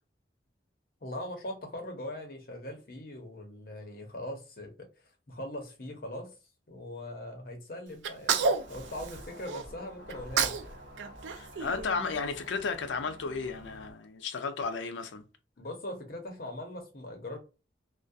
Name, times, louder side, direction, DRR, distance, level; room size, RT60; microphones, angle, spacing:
voice 1, 1.0-4.7 5.0-6.3 6.7-10.8 15.6-17.4, left 1 dB, 50° left, 0.7 m, -41 dB
Sneeze, 8.0-9.6 10.1-10.7 11.0-12.4, right 5 dB, 85° right, 0.4 m, -31 dB
London Exterior atmos Goodyear blimp overhead, 8.3-13.9, equal, 55° right, 0.9 m, -49 dB
voice 2, 11.3-15.2, left 4 dB, 85° left, 0.4 m, -34 dB
2.3 x 2.1 x 2.6 m
head